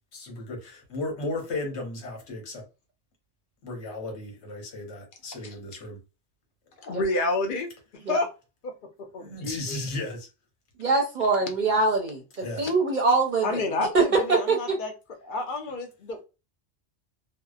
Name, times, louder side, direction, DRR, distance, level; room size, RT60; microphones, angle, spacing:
voice 1, 0.1-2.7 3.6-6.0 9.2-10.3 12.4-12.7, left 2 dB, 80° left, 2 dB, 1.1 m, -35 dB
voice 2, 6.8-7.7 8.1-8.3 8.6-8.7 9.1-9.8 13.4-14.9 15.2-16.2, left 2 dB, 55° left, 5 dB, 0.7 m, -29 dB
voice 3, 10.8-14.8, right 3 dB, 50° right, 1 dB, 0.6 m, -24 dB
2.7 x 2.1 x 2.3 m, 0.29 s
omnidirectional pair, 1.2 m